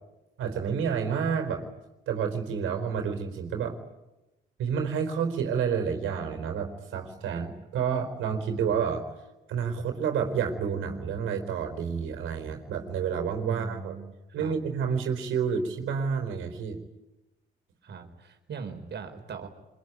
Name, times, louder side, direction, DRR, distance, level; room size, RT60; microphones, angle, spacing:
voice 1, 0.4-1.7 2.1-3.8 4.6-9.1 9.5-14.0 14.3-16.8, right 6 dB, 85° right, 5 dB, 4.5 m, -29 dB
voice 2, 13.5-14.5 17.8-19.5, right 5 dB, 60° right, 5 dB, 4.5 m, -40 dB
25.0 x 23.0 x 9.5 m, 0.99 s
cardioid pair, 90°, 20 cm